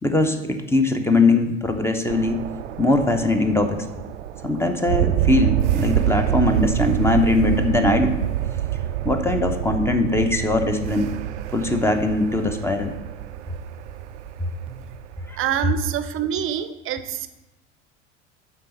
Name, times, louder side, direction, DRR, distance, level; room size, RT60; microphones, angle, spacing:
voice 1, 0.0-2.4 2.8-3.8 4.4-8.2 9.0-11.1 11.5-12.9 15.3-15.4, left 2 dB, 5° left, 6 dB, 0.8 m, -21 dB
sound 1, 2.1-16.0, right 12 dB, 70° right, 0.5 m, -26 dB
voice 2, 15.4-17.3, right 9 dB, 35° right, 11 dB, 0.7 m, -26 dB
8.9 x 4.1 x 6.6 m, 1.0 s
figure-of-eight pair, 70°, 36 cm